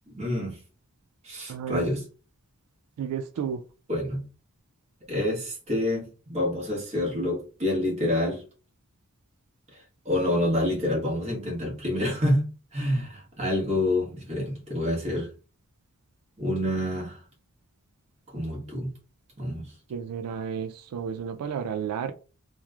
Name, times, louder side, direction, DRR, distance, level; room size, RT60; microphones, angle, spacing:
voice 1, 0.1-0.6 1.2-2.0 3.9-4.2 5.1-8.4 10.0-12.4 12.7-15.3 16.4-17.2 18.3-18.9 19.4-19.7, left 1 dB, 30° right, 1.0 m, -27 dB
voice 2, 1.5-1.9 3.0-3.6 19.9-22.1, right 7 dB, 90° right, 0.3 m, -32 dB
3.0 x 2.0 x 2.3 m
head